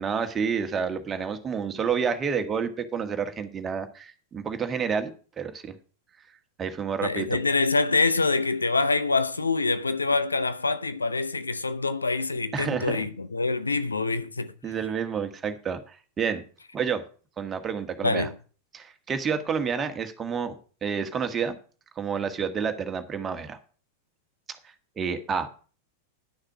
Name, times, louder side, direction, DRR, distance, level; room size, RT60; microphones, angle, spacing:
voice 1, 0.0-5.1 5.4-5.8 6.6-7.4 12.5-13.1 14.6-16.4 16.7-17.0 17.4-18.3 18.7-20.5 20.8-21.5 21.9-23.6 24.6-25.5, right 6 dB, 20° right, 1.5 m, -29 dB
voice 2, 7.0-14.5 18.0-18.3, left 3 dB, 80° left, 0.7 m, -25 dB
11.0 x 6.5 x 6.0 m
figure-of-eight pair, 90°, 0 cm